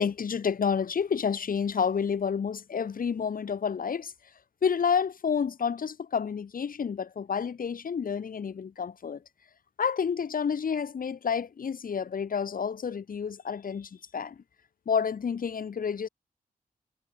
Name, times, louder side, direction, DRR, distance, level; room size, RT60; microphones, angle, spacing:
voice 1, 0.0-4.1 4.6-9.2 9.8-14.4 14.9-16.1, left 6 dB, 70° left, 4.2 m, -29 dB
cardioid pair, 60°, 15 cm